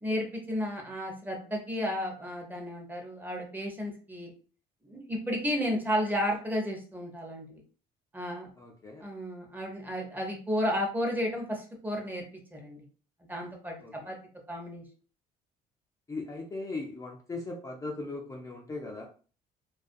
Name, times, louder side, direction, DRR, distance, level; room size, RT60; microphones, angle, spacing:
voice 1, 0.0-4.3 4.8-7.6 8.1-8.5 9.0-12.2 12.5-12.8 13.3-14.2 14.5-14.8, equal, 10° right, 1 dB, 0.7 m, -33 dB
voice 2, 8.6-9.0 13.8-13.9 16.1-19.1, left 3 dB, 20° left, -2 dB, 0.4 m, -38 dB
2.4 x 2.2 x 2.5 m, 0.39 s
cardioid pair, 110°, 17 cm